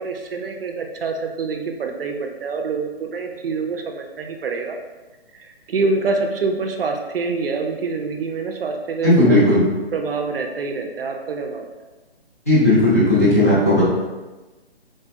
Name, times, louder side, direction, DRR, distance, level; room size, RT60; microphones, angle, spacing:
voice 1, 0.0-4.8 5.3-9.6 9.9-11.6, right 4 dB, 65° right, 4 dB, 0.5 m, -26 dB
voice 2, 9.0-9.6 12.5-13.8, left 1 dB, 15° left, -11 dB, 0.4 m, -15 dB
3.3 x 2.2 x 2.6 m, 1.2 s
hypercardioid pair, 150°, 31 cm